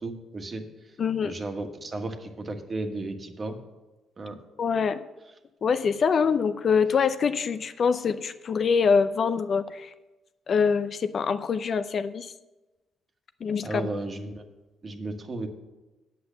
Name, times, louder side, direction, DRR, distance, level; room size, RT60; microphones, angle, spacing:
voice 1, 0.0-3.6 4.2-4.4 13.6-14.4 14.8-15.5, right 2 dB, 35° right, 5 dB, 1.5 m, -34 dB
voice 2, 1.0-1.3 4.6-5.0 5.6-9.9 10.5-12.3 13.4-13.7, left 6 dB, 50° left, 11 dB, 0.5 m, -24 dB
8.5 x 7.9 x 6.9 m, 1.1 s
cardioid pair, 90°, 0 cm